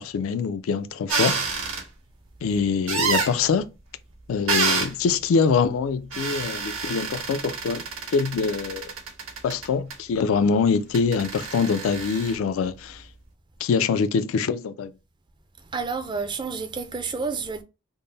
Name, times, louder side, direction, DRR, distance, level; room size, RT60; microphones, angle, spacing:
voice 1, 0.0-1.5 2.4-3.7 4.3-7.8 8.1-8.9 9.4-13.1 13.6-14.9, left 5 dB, 85° left, 0.3 m, -24 dB
sound 1, 1.1-1.8 2.9-3.3 4.5-4.9 6.1-9.9 10.9-12.4, right 5 dB, 75° right, 1.2 m, -27 dB
voice 2, 15.6-17.6, right 4 dB, 20° right, 0.4 m, -30 dB
3.6 x 2.0 x 3.9 m
head